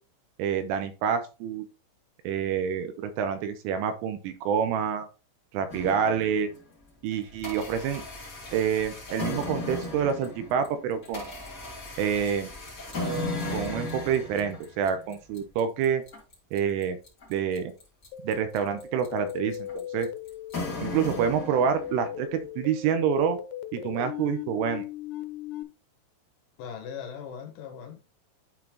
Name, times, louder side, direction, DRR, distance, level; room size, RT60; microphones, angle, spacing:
voice 1, 0.4-1.6 2.2-5.1 5.5-6.5 7.0-8.0 8.5-11.3 12.0-12.5 13.5-16.0 16.5-17.0 17.3-17.7 18.2-20.1 20.8-23.4 23.7-24.8, right 7 dB, 80° right, 3.2 m, -27 dB
sound 1, 5.7-6.6 7.1-22.2, left 2 dB, 45° left, 1.1 m, -36 dB
sound 2, 18.1-25.6, left 11 dB, 90° left, 3.5 m, -38 dB
voice 2, 26.6-28.0, left 7 dB, 75° left, 3.5 m, -39 dB
11.5 x 4.1 x 2.9 m
omnidirectional pair, 5.9 m